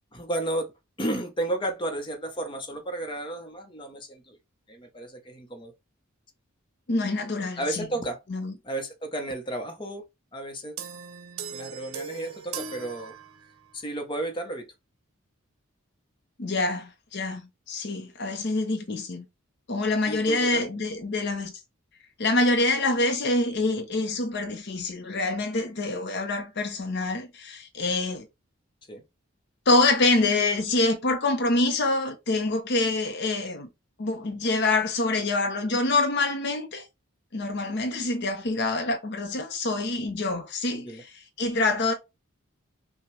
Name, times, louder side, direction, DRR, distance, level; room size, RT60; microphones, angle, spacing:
voice 1, 0.1-0.7 1.0-4.4 4.7-5.7 7.6-8.2 8.6-10.0 10.3-10.8 11.5-13.1 13.7-14.7 20.1-20.6 28.9-29.0 40.7-41.0, right 1 dB, 25° left, 0.8 m, -32 dB
voice 2, 6.9-7.9 8.3-8.5 16.4-19.2 19.7-21.5 22.2-28.3 29.7-33.7 34.0-36.9 37.3-41.9, left 2 dB, 55° left, 0.6 m, -26 dB
sound 1, 10.8-13.8, right 6 dB, 85° right, 0.6 m, -39 dB
5.9 x 2.2 x 3.1 m
head